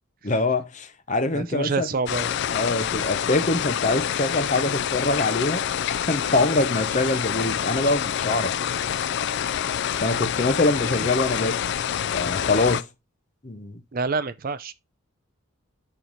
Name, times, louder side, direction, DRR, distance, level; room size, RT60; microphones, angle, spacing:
voice 1, 0.2-1.9 2.5-5.6 6.0-8.5 10.0-11.6 12.1-12.9 13.4-13.8, left 2 dB, 35° left, 0.7 m, -24 dB
voice 2, 1.3-2.3 11.0-11.1 13.9-14.7, right 4 dB, 40° right, 0.5 m, -27 dB
sound 1, 2.1-12.8, left 9 dB, 55° left, 0.3 m, -27 dB
5.7 x 4.8 x 4.0 m
head